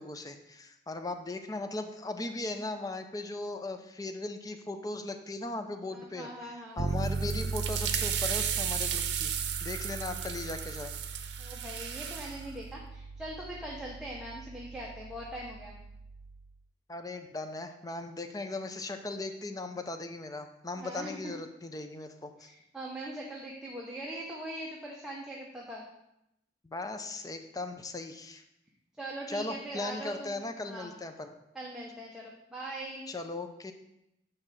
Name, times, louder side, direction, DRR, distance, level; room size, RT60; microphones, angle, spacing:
voice 1, 0.0-10.9 16.9-22.5 26.6-28.4 29.3-31.3 33.1-33.7, left 2 dB, 20° left, 7 dB, 0.5 m, -38 dB
voice 2, 5.9-6.9 11.4-15.8 20.8-21.3 22.4-25.9 29.0-30.4 30.7-30.9 31.5-33.0, right 1 dB, 5° right, -4 dB, 0.9 m, -41 dB
Bass guitar, 6.8-16.5, right 3 dB, 40° right, 0.3 m, -38 dB
sound 1, 7.0-12.4, right 9 dB, 70° right, 0.7 m, -35 dB
9.4 x 3.3 x 6.2 m, 0.84 s
head